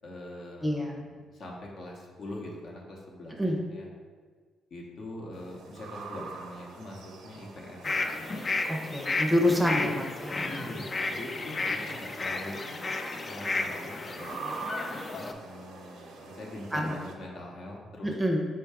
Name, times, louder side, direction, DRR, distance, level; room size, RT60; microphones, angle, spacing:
voice 1, 0.0-3.9 4.7-8.3 9.7-9.9 10.4-12.6 13.2-14.3 15.1-18.1, left 1 dB, 60° left, -2 dB, 0.8 m, -43 dB
voice 2, 0.6-1.0 3.4-3.6 8.7-10.5 16.7-17.0 18.0-18.4, left 1 dB, 10° right, 0 dB, 0.6 m, -27 dB
sound 1, 5.3-17.1, right 4 dB, 85° right, 0.6 m, -45 dB
sound 2, 7.8-15.3, left 3 dB, 30° left, 0.3 m, -33 dB
4.5 x 2.3 x 4.6 m, 1.5 s
cardioid pair, 90°, 0 cm